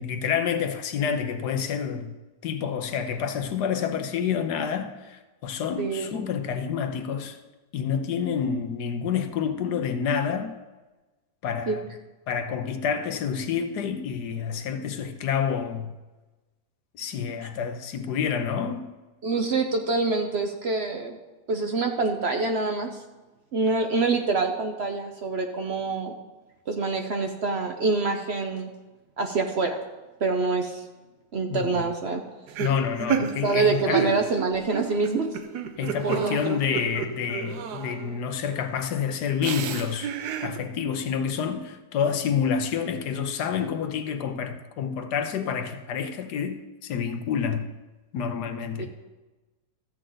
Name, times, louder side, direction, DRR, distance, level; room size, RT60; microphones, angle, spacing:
voice 1, 0.0-2.1 2.4-7.4 7.7-10.5 11.4-11.9 12.3-15.9 16.9-18.9 31.5-31.8 32.6-34.2 35.8-40.1 40.4-47.7 48.1-48.9, left 7 dB, 80° left, 1.4 m, -28 dB
voice 2, 5.8-6.2 11.7-11.8 19.2-21.2 21.5-23.0 23.5-26.1 26.7-28.7 29.2-29.8 30.2-30.8 31.3-32.2 33.2-35.4 36.0-36.6 48.8-48.9, right 3 dB, 50° right, 0.8 m, -26 dB
sound 1, 32.5-38.3 39.4-40.6, right 8 dB, 80° right, 1.3 m, -31 dB
13.5 x 7.7 x 3.9 m
omnidirectional pair, 1.7 m